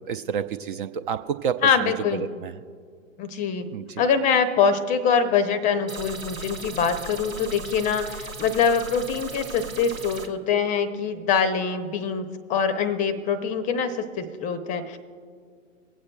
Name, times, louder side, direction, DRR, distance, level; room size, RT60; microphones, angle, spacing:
voice 1, 0.1-2.5 3.7-3.8, right 7 dB, 45° right, 10 dB, 0.4 m, -29 dB
voice 2, 1.6-2.3 3.2-3.7 4.0-15.0, left 6 dB, 20° left, 11 dB, 0.6 m, -24 dB
sound 1, 5.9-10.3, right 3 dB, 90° right, 1.1 m, -37 dB
24.5 x 8.5 x 2.2 m, 2.1 s
figure-of-eight pair, 110°, 39 cm